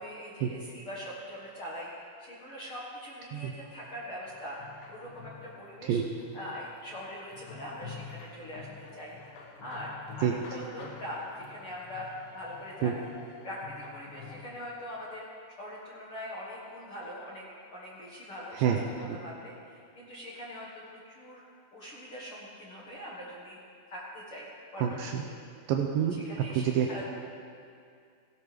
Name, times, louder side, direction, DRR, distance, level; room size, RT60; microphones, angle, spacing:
voice 1, 0.0-6.0 6.3-8.7 8.9-9.2 9.6-12.1 12.3-13.1 13.4-15.3 15.6-18.7 19.2-21.4 21.7-23.6 23.9-25.4 25.9-27.0, equal, 60° left, -5 dB, 1.4 m, -42 dB
sound 1, 4.3-14.5, left 5 dB, 80° left, 3.4 m, -48 dB
voice 2, 24.8-25.2 25.7-27.0, right 8 dB, 85° right, 1 dB, 1.9 m, -28 dB
17.5 x 16.5 x 3.4 m, 2.4 s
omnidirectional pair, 4.8 m